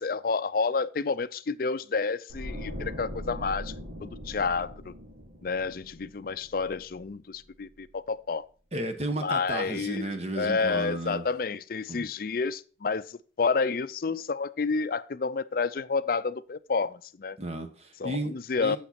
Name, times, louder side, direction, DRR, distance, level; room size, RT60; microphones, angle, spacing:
voice 1, 0.0-3.7 4.0-4.9 5.4-8.5 9.2-17.4 18.0-18.8, left 4 dB, 50° left, 0.5 m, -30 dB
sound 1, 2.3-7.4 7.7-7.9, equal, 75° right, 3.3 m, -41 dB
voice 2, 8.7-11.3 11.9-12.1 17.4-18.3 18.6-18.8, right 1 dB, 35° right, 1.2 m, -33 dB
8.9 x 7.3 x 4.2 m
head